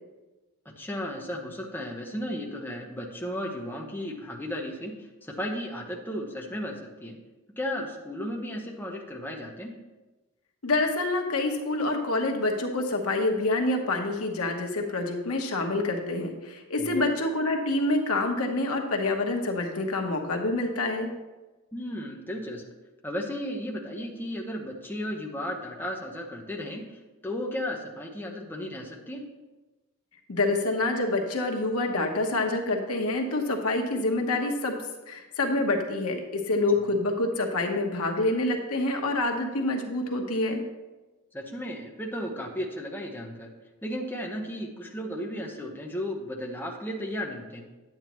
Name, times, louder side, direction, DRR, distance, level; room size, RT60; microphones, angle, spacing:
voice 1, 0.6-7.2 7.6-9.7 16.8-17.1 21.7-22.6 23.0-26.8 27.2-29.2 41.3-43.5 43.8-47.6, equal, 10° left, -1 dB, 0.9 m, -34 dB
voice 2, 10.6-21.1 30.3-34.7 35.1-40.6, left 2 dB, 75° left, 3 dB, 1.1 m, -27 dB
9.5 x 8.7 x 3.0 m, 1.1 s
head